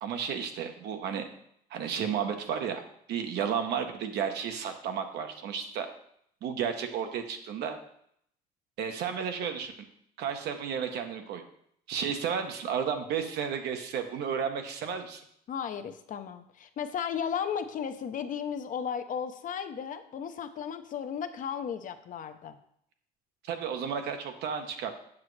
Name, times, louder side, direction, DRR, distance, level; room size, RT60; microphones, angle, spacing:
voice 1, 0.0-1.3 1.7-2.8 3.1-5.9 6.4-7.8 8.8-9.7 10.2-11.4 11.9-15.2 23.5-24.9, right 7 dB, 75° right, 6 dB, 0.9 m, -32 dB
voice 2, 15.5-22.6, left 7 dB, 50° left, 8 dB, 0.6 m, -35 dB
7.3 x 6.1 x 3.2 m, 0.69 s
cardioid pair, 110°, 17 cm